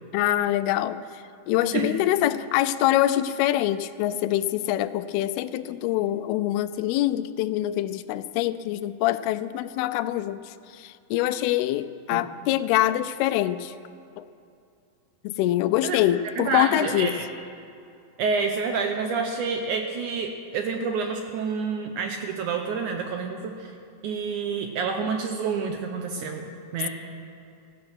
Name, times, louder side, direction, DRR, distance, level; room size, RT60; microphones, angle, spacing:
voice 1, 0.1-13.7 14.2-14.3 15.2-17.2, left 13 dB, 85° left, 14 dB, 2.5 m, -25 dB
voice 2, 16.4-17.3 18.2-23.7 24.0-26.9, right 5 dB, 75° right, 4 dB, 1.8 m, -28 dB
15.5 x 15.0 x 6.1 m, 2.5 s
omnidirectional pair, 4.5 m